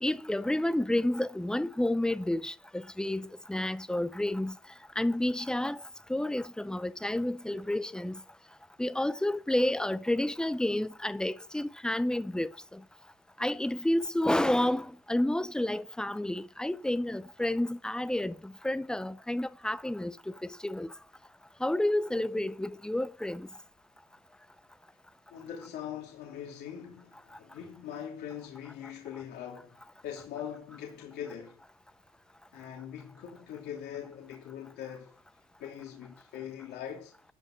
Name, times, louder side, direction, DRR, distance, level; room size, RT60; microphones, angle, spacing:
voice 1, 0.0-4.6 5.0-5.8 6.1-8.2 8.8-12.8 13.4-20.9 21.6-23.5, left 1 dB, 5° left, 0.6 m, -30 dB
voice 2, 25.3-31.6 32.5-35.1 35.6-37.1, left 9 dB, 75° left, 2.9 m, -42 dB
13.0 x 5.3 x 6.5 m
cardioid pair, 110°, 17 cm